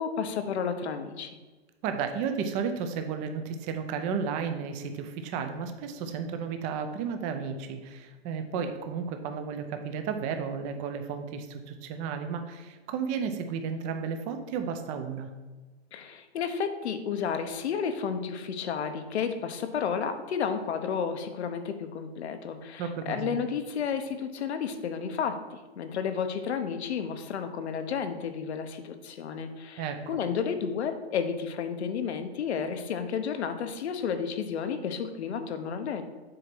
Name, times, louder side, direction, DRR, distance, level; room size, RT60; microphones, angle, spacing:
voice 1, 0.0-1.4 15.9-36.0, left 6 dB, 80° left, 8 dB, 0.9 m, -32 dB
voice 2, 1.8-15.3 22.8-23.4 29.8-30.0, right 6 dB, 25° right, 7 dB, 0.5 m, -33 dB
7.7 x 2.8 x 6.0 m, 1.3 s
hypercardioid pair, 150°, 32 cm